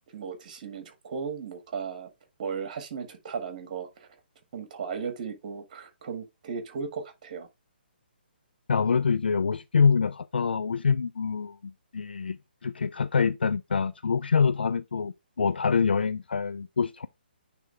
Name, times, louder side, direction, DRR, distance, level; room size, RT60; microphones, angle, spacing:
voice 1, 0.1-2.1 2.4-4.1 4.5-7.5, right 6 dB, 45° right, 1.8 m, -36 dB
voice 2, 8.7-17.1, left 5 dB, 70° left, 0.4 m, -25 dB
9.2 x 3.5 x 3.3 m
figure-of-eight pair, 135°, 6 cm